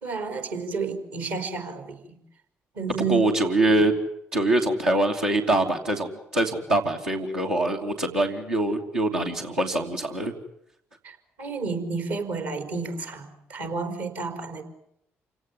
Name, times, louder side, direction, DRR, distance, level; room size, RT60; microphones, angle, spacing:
voice 1, 0.0-2.2 2.7-3.3 3.6-3.7 11.0-14.6, right 4 dB, 75° right, 7 dB, 4.5 m, -31 dB
voice 2, 3.1-3.9 4.3-10.3, right 2 dB, 90° right, -5 dB, 2.9 m, -24 dB
28.5 x 18.0 x 9.5 m, 0.76 s
hypercardioid pair, 40°, 6 cm